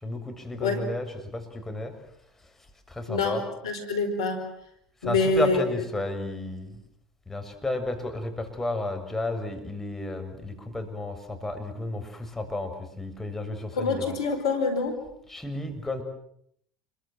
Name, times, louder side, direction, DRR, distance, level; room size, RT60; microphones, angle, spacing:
voice 1, 0.0-1.9 2.9-3.4 5.0-6.7 7.3-14.2 15.3-16.0, left 2 dB, 15° left, 5 dB, 6.9 m, -32 dB
voice 2, 3.1-4.5 5.0-5.6 13.7-15.0, left 3 dB, 85° left, 8 dB, 4.7 m, -26 dB
29.0 x 23.5 x 7.7 m, 0.71 s
hypercardioid pair, 75°, 3 cm